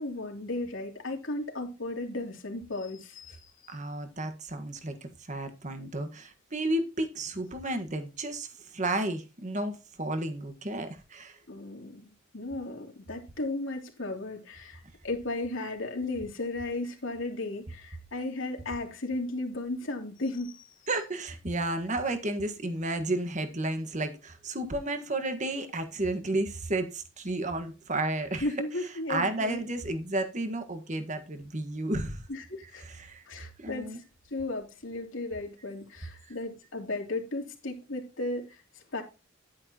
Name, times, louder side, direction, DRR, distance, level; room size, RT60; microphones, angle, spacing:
voice 1, 0.0-3.7 11.5-20.7 28.4-29.6 32.3-32.9 33.3-34.0 34.3-38.6 38.9-39.0, left 2 dB, 75° left, 3.1 m, -35 dB
voice 2, 3.7-8.5 8.7-11.4 20.9-28.5 29.1-32.2 32.8-33.2 33.6-34.0 36.3-36.4, right 2 dB, 40° right, 1.6 m, -32 dB
11.0 x 9.5 x 3.0 m
head